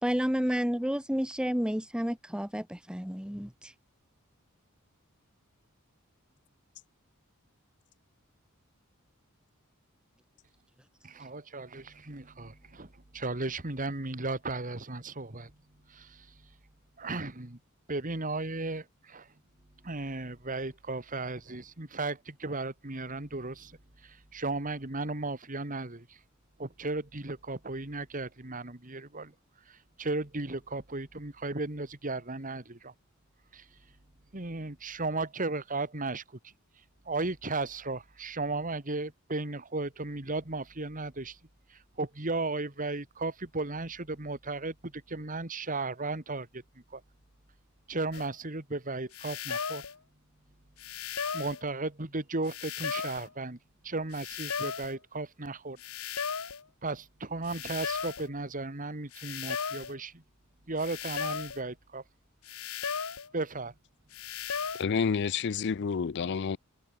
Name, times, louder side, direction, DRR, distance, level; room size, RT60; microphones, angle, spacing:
voice 1, 0.0-3.7, equal, 5° right, 1.2 m, -30 dB
voice 2, 11.0-15.5 15.9-16.3 17.0-17.6 17.9-19.3 19.8-23.8 24.0-26.2 26.6-29.3 29.7-32.9 33.5-33.7 34.3-36.5 37.1-41.4 41.7-46.6 46.9-47.0 47.9-49.8 51.3-53.6 53.8-55.8 56.8-60.2 60.7-62.0 63.3-63.7, right 2 dB, 40° right, 2.1 m, -35 dB
sound 1, 48.1-48.3 49.1-49.9 50.8-51.6 52.5-53.3 54.1-54.9 55.8-56.6 57.5-58.3 59.1-59.9 60.8-61.6 62.5-63.3 64.1-64.8, left 6 dB, 85° left, 1.6 m, -36 dB
voice 3, 64.8-66.6, left 6 dB, 55° left, 0.4 m, -29 dB
head